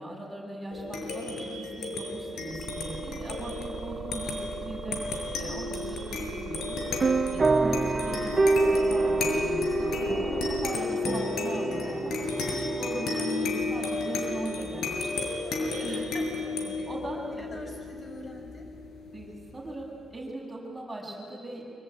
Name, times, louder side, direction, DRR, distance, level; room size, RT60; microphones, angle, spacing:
voice 1, 0.0-5.1 5.4-12.1 12.5-15.3 15.8-16.5 16.9-17.6 19.1-21.7, right 1 dB, 15° right, -2 dB, 7.7 m, -39 dB
sound 1, 0.7-19.6, left 3 dB, 75° left, 5.6 m, -33 dB
sound 2, 2.5-10.7, right 6 dB, 65° right, 2.4 m, -41 dB
sound 3, 7.0-15.1, right 3 dB, 30° right, 1.0 m, -28 dB
voice 2, 9.8-10.4 12.6-12.7 15.4-16.1 16.4-18.7, left 1 dB, 35° left, 3 dB, 6.7 m, -47 dB
25.0 x 24.5 x 9.3 m, 2.4 s
cardioid pair, 115°, 0 cm